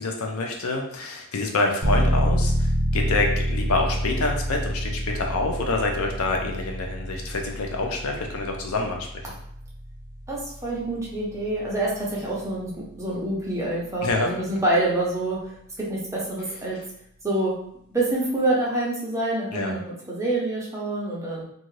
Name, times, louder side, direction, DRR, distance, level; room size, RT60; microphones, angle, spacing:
voice 1, 0.0-9.3 14.0-14.3 19.5-19.7, left 2 dB, 70° left, 2 dB, 0.5 m, -27 dB
sound 1, 1.8-12.4, equal, 70° right, 0.8 m, -27 dB
voice 2, 10.3-15.5 15.9-16.8 17.2-17.6 17.9-21.4, right 1 dB, 15° right, -5 dB, 0.6 m, -26 dB
2.6 x 2.3 x 3.1 m, 0.71 s
head